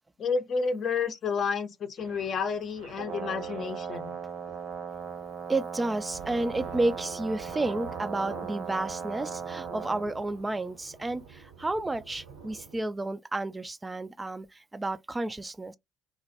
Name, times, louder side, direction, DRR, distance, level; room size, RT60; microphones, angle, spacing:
voice 1, 0.2-4.2, left 5 dB, 50° left, 0.5 m, -30 dB
Thunder / Rain, 2.0-12.8, right 5 dB, 75° right, 0.9 m, -48 dB
Brass instrument, 2.9-10.1, right 6 dB, 45° right, 0.7 m, -38 dB
voice 2, 5.5-15.8, right 2 dB, 20° right, 0.3 m, -31 dB
2.2 x 2.1 x 2.7 m
figure-of-eight pair, 50°, 0 cm